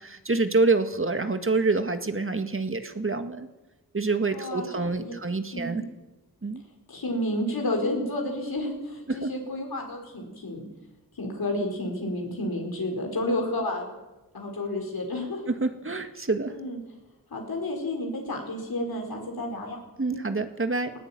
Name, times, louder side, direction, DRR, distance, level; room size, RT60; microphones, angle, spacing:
voice 1, 0.0-3.5 3.9-5.8 6.4-6.6 9.1-9.3 15.5-16.6 20.0-20.9, right 3 dB, 35° right, 8 dB, 1.9 m, -27 dB
voice 2, 4.3-5.1 5.5-5.9 6.9-10.7 11.2-14.0 14.3-15.4 16.5-16.8 17.3-19.8 20.1-20.2, left 1 dB, 80° left, 1 dB, 5.1 m, -31 dB
19.0 x 16.5 x 9.1 m, 1.1 s
wide cardioid pair, 65°, 36 cm